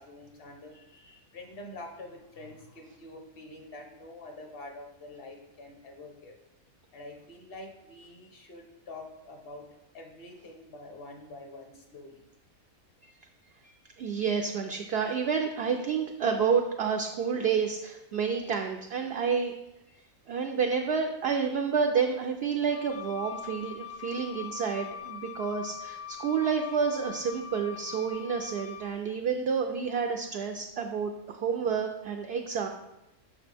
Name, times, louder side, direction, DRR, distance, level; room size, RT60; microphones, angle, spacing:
voice 1, 0.0-6.4 6.9-12.3, left 2 dB, 45° left, 2 dB, 1.1 m, -46 dB
voice 2, 14.0-19.5 20.3-32.7, right 6 dB, 65° right, 3 dB, 0.6 m, -29 dB
Wind instrument woodwind instrument, 22.7-29.0, left 9 dB, 65° left, 0.7 m, -42 dB
6.5 x 6.1 x 3.4 m, 0.92 s
omnidirectional pair, 1.5 m